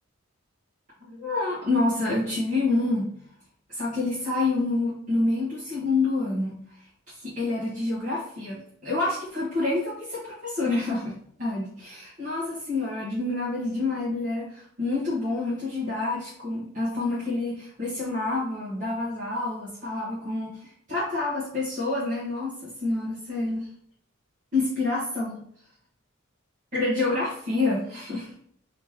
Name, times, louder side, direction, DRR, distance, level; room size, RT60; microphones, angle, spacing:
voice 1, 1.0-3.1 3.7-6.6 7.1-23.7 24.5-25.4 26.7-28.3, left 2 dB, 35° right, -11 dB, 1.3 m, -28 dB
3.2 x 3.0 x 3.6 m, 0.64 s
head